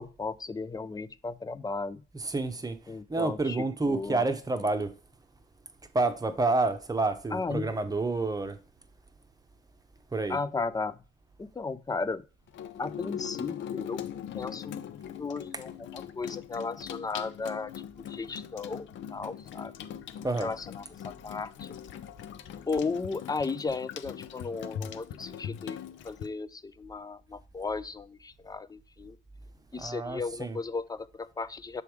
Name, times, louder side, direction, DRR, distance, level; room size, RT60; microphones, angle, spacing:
voice 1, 0.0-2.0 2.9-4.2 7.3-7.7 10.3-11.0 11.4-12.2 12.8-14.0 14.3-14.8 15.2-17.7 18.1-19.7 20.4-20.8 21.2-21.7 22.7-29.2 29.7-31.8, left 4 dB, 20° left, 0.4 m, -35 dB
voice 2, 2.2-2.8 3.1-4.9 5.9-8.6 10.1-10.4 20.2-20.5 29.7-30.6, right 3 dB, 20° right, 0.8 m, -29 dB
Water tap faucet / Sink (filling or washing), 12.5-26.3, left 9 dB, 70° left, 0.5 m, -41 dB
7.0 x 3.4 x 4.6 m
cardioid pair, 90°, 20 cm